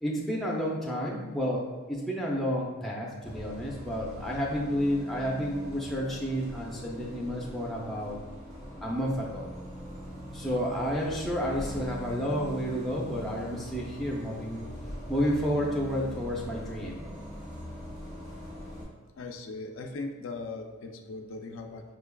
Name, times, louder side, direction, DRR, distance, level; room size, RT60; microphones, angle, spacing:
voice 1, 0.0-8.2 8.8-9.5 10.3-14.6 15.1-17.0, equal, ahead, -3 dB, 0.5 m, -31 dB
Bus, 3.2-18.8, equal, 30° right, 1.2 m, -42 dB
voice 2, 19.2-21.8, left 3 dB, 60° left, 4 dB, 0.4 m, -39 dB
5.1 x 3.4 x 2.2 m, 1.4 s
head